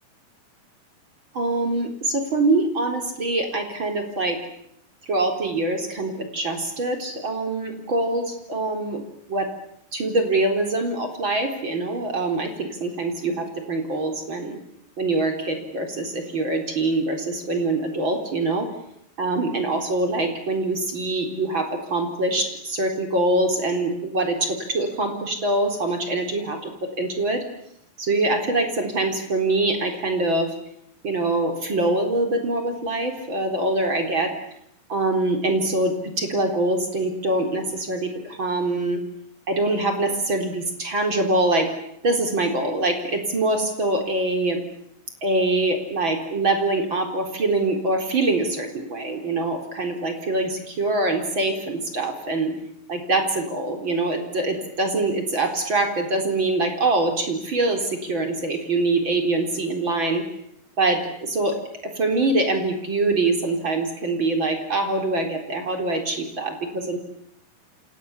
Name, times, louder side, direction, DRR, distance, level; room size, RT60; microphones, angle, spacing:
voice 1, 1.3-4.4 5.1-9.5 9.9-14.6 15.0-18.7 19.2-27.4 28.0-30.5 31.0-34.3 34.9-39.0 39.5-41.7 42.0-44.6 45.2-52.5 52.9-60.2 60.8-61.6 61.8-67.0, right 2 dB, 30° right, 4 dB, 4.5 m, -24 dB
29.5 x 27.5 x 7.3 m, 0.75 s
omnidirectional pair, 4.4 m